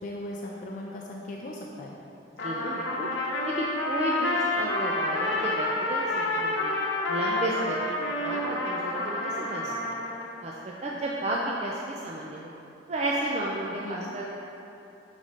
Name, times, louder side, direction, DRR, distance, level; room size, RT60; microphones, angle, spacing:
voice 1, 0.0-2.0 13.8-14.2, left 1 dB, 45° left, -2 dB, 0.5 m, -38 dB
Trumpet, 2.4-10.3, left 2 dB, 75° left, 0.9 m, -29 dB
voice 2, 2.4-3.1 3.4-6.7 7.1-7.8 8.2-10.0 10.4-12.5 12.9-14.4, right 1 dB, 35° right, -3 dB, 0.4 m, -32 dB
6.2 x 4.0 x 5.1 m, 2.8 s
head